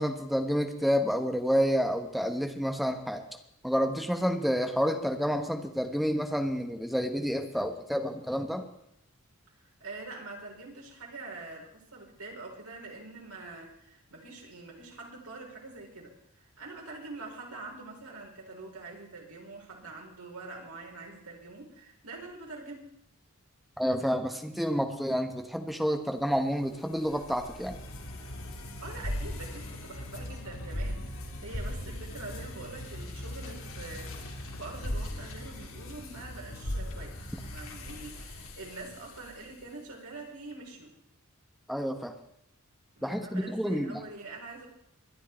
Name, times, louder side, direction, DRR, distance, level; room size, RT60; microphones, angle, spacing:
voice 1, 0.0-3.2 3.6-8.7 23.8-27.8 41.7-42.1 43.0-44.0, equal, ahead, 5 dB, 1.3 m, -29 dB
voice 2, 9.8-23.0 28.8-41.0 43.0-44.7, right 3 dB, 85° right, 0 dB, 4.3 m, -45 dB
sound 1, 26.3-39.7, left 1 dB, 65° left, 2.9 m, -39 dB
23.0 x 10.5 x 4.5 m, 0.75 s
head